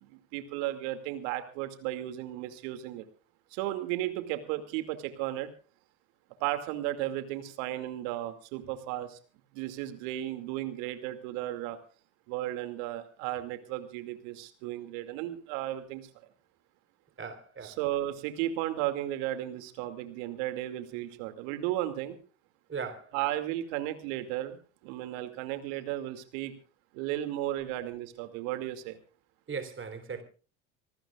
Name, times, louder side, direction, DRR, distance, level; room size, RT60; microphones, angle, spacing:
voice 1, 0.0-3.0 3.5-5.5 6.4-9.2 9.5-11.8 12.3-16.1 17.6-22.2 23.1-26.6 26.9-29.0, right 14 dB, 65° right, 2.5 m, -34 dB
voice 2, 17.2-17.8 22.7-23.2 29.5-30.2, right 5 dB, 30° right, 3.6 m, -38 dB
25.5 x 19.5 x 2.4 m
hypercardioid pair, 70°, 43 cm